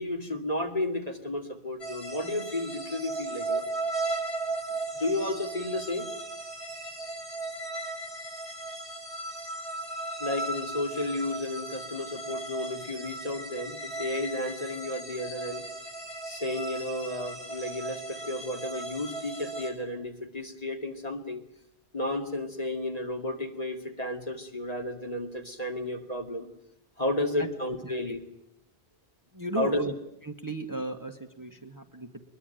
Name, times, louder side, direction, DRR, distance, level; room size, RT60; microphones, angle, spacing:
voice 1, 0.0-3.6 4.9-6.1 10.2-15.6 16.2-21.4 21.9-26.5 27.0-28.2 29.6-29.8, left 1 dB, 35° left, 4 dB, 2.7 m, -32 dB
sound 1, 1.8-19.7, right 2 dB, 75° left, 5.9 m, -36 dB
voice 2, 27.8-28.1 29.3-29.9 30.2-32.2, right 2 dB, 20° right, 6 dB, 1.8 m, -35 dB
23.0 x 22.0 x 9.2 m, 0.80 s
omnidirectional pair, 1.1 m